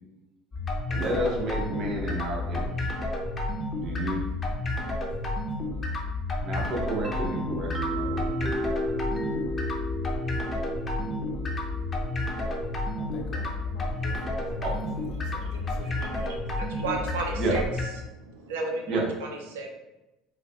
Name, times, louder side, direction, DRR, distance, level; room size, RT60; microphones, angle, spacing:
sound 1, 0.5-17.9, left 2 dB, 25° left, 0.7 m, -31 dB
voice 1, 0.9-2.9 3.7-4.2 6.4-8.6 14.6-14.8 15.1-15.3 17.4-17.5 18.9-19.1, right 1 dB, 50° right, 0.9 m, -31 dB
voice 2, 4.5-4.9 13.0-16.3 16.8-17.7, left 3 dB, 65° left, 0.6 m, -45 dB
sound 2, 7.0-14.7, right 1 dB, 5° right, 0.4 m, -35 dB
voice 3, 15.4-17.6 18.0-19.7, right 3 dB, 85° right, 0.4 m, -35 dB
4.6 x 2.1 x 2.3 m
supercardioid pair, 90°, 0 cm